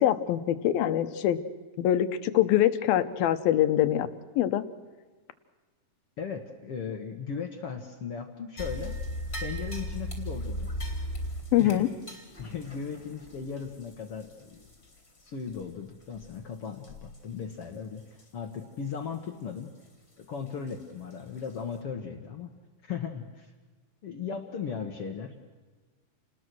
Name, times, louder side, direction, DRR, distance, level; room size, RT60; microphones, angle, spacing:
voice 1, 0.0-1.4 1.8-4.1 4.4-4.6 11.5-11.9, left 12 dB, 90° left, 11 dB, 2.9 m, -24 dB
voice 2, 6.2-8.9 9.4-10.7 11.6-11.9 12.4-14.6 15.2-18.0 18.3-19.7 20.2-22.5 22.8-23.5 24.0-25.4, left 6 dB, 55° left, 5 dB, 1.8 m, -37 dB
sound 1, 8.6-15.2 15.5-15.6 16.1-16.4 16.8-17.2 17.5-17.6 18.2-18.3 20.7-20.8 21.4-21.5, equal, 15° left, 3.5 m, -37 dB
29.0 x 20.0 x 6.2 m, 1.3 s
omnidirectional pair, 4.1 m